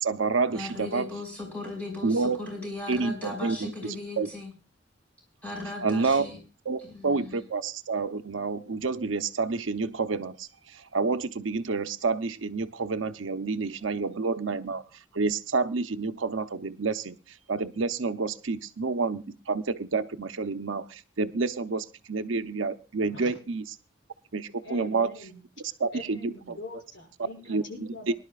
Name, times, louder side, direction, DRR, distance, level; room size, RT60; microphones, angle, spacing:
voice 1, 0.0-1.1 2.0-2.4 2.9-3.7 4.2-4.3 5.8-6.3 6.7-14.8 15.1-17.2 17.5-23.6 24.3-25.1 25.8-26.6 27.2-27.6, right 4 dB, 90° right, 10 dB, 0.7 m, -29 dB
voice 2, 0.5-4.5 5.4-6.4 6.8-7.5, left 2 dB, 10° left, 0 dB, 5.3 m, -37 dB
voice 3, 24.6-25.4 25.9-28.2, left 2 dB, 80° left, 2 dB, 6.4 m, -42 dB
23.5 x 11.5 x 2.4 m, 0.31 s
head